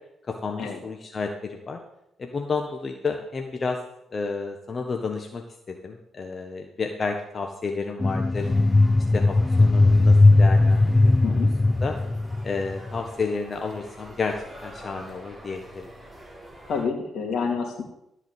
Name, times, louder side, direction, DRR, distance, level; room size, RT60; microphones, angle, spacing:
voice 1, 0.3-1.8 2.2-3.8 4.1-8.5 9.1-11.4 11.8-11.9 12.4-14.3 14.6-15.9, left 4 dB, 40° left, 3 dB, 1.4 m, -31 dB
sound 1, 8.0-13.1, left 2 dB, 20° left, 0.3 m, -18 dB
sound 2, 8.4-16.8, equal, 20° right, 6.1 m, -46 dB
voice 2, 16.6-17.8, left 5 dB, 65° left, -1 dB, 2.7 m, -28 dB
15.0 x 5.0 x 8.2 m, 0.82 s
supercardioid pair, 70°, 0 cm